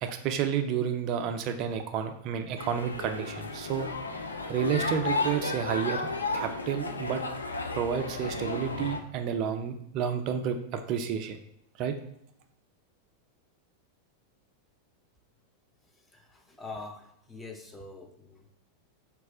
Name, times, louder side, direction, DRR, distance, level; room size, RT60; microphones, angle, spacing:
voice 1, 0.0-3.9 4.5-6.1 6.3-7.2 7.7-11.4 11.8-11.9, right 8 dB, 40° right, 7 dB, 0.4 m, -30 dB
sound 1, 2.6-9.0, left 3 dB, 75° left, 0.3 m, -33 dB
voice 2, 15.8-18.5, left 3 dB, 10° left, 2 dB, 0.5 m, -45 dB
3.1 x 2.3 x 3.7 m, 0.73 s
figure-of-eight pair, 90°, 0 cm